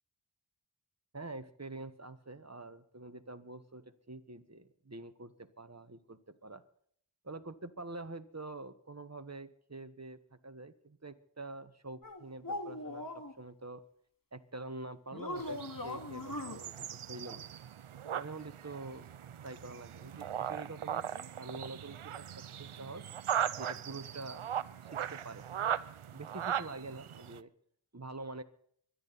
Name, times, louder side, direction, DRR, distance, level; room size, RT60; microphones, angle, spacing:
voice 1, 1.1-6.6 7.2-13.8 14.3-17.4 18.1-23.0 23.6-24.4 24.8-25.4 26.1-27.5 27.9-28.4, right 2 dB, 30° right, 9 dB, 1.4 m, -46 dB
sound 1, 12.0-13.3 15.1-16.6, left 1 dB, 45° left, 2.2 m, -40 dB
sound 2, 15.4-27.4, right 9 dB, 85° right, 0.6 m, -39 dB
24.5 x 11.0 x 4.2 m, 0.64 s
wide cardioid pair, 45°, 49 cm